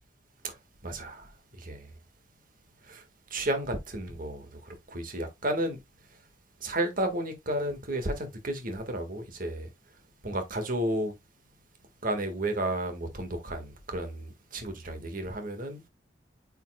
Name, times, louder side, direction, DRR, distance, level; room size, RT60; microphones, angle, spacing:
voice 1, 0.8-1.3 1.6-1.9 2.8-3.0 3.3-5.8 6.6-9.7 10.2-11.1 12.0-15.8, right 1 dB, 50° right, 1.8 m, -32 dB
9.0 x 5.7 x 2.3 m
head